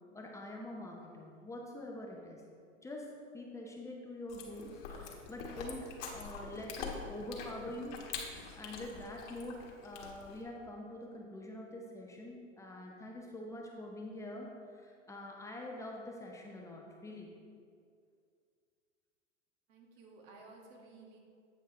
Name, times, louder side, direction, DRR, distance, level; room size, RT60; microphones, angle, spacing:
voice 1, 0.1-2.4 2.8-17.3, left 1 dB, 10° left, -1 dB, 0.6 m, -45 dB
Chewing mastication, 4.3-10.4, left 5 dB, 50° left, 1.4 m, -45 dB
voice 2, 19.7-21.2, right 3 dB, 45° right, 0 dB, 1.7 m, -55 dB
8.8 x 5.4 x 3.7 m, 2.2 s
hypercardioid pair, 120°, 38 cm